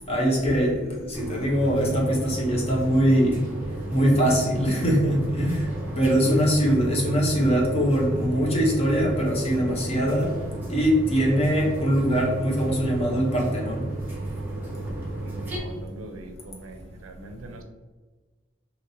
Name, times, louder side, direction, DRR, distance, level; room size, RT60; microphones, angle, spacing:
voice 1, 0.0-3.4 3.9-5.7 6.0-10.3 10.7-13.8, equal, 30° left, -2 dB, 0.7 m, -22 dB
sound 1, 1.1-15.6, right 2 dB, 10° right, 0.6 m, -33 dB
voice 2, 15.2-17.6, right 2 dB, 90° right, 5 dB, 0.5 m, -42 dB
2.9 x 2.9 x 2.6 m, 1.3 s
head